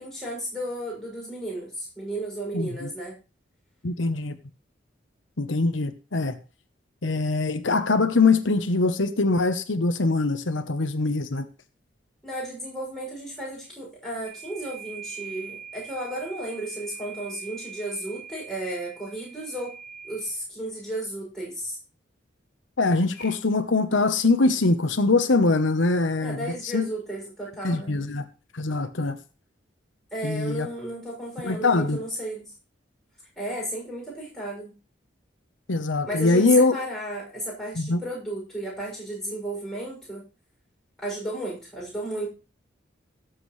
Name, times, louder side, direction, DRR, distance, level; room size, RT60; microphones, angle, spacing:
voice 1, 0.0-3.2 12.2-19.7 20.0-21.8 26.2-28.0 30.1-32.5 33.4-34.7 36.0-40.2 41.0-42.3, right 1 dB, 5° left, -5 dB, 6.6 m, -33 dB
voice 2, 2.5-2.9 3.8-4.3 5.4-6.4 7.0-11.5 22.8-26.9 27.6-28.2 28.5-29.2 30.2-30.7 31.4-32.0 35.7-36.7 37.8-38.0, left 3 dB, 90° left, 9 dB, 1.0 m, -23 dB
sound 1, 14.2-20.3 23.1-23.3, right 7 dB, 45° left, 3.2 m, -43 dB
17.0 x 7.5 x 3.2 m, 0.32 s
head